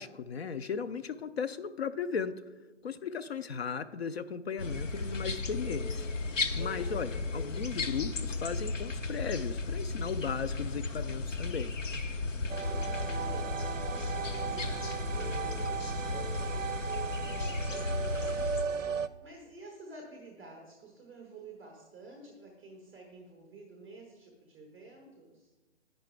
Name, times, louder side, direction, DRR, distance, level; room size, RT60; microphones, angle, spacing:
voice 1, 0.0-2.4 2.8-6.1 6.5-11.7, left 6 dB, 60° left, 12 dB, 0.4 m, -36 dB
sound 1, 4.6-18.6, left 3 dB, 85° left, 0.8 m, -35 dB
voice 2, 6.6-7.0 12.2-25.5, right 2 dB, 5° right, 0 dB, 0.5 m, -51 dB
sound 2, 12.5-19.1, right 7 dB, 85° right, 0.5 m, -36 dB
9.4 x 5.2 x 4.5 m, 1.2 s
figure-of-eight pair, 135°, 37 cm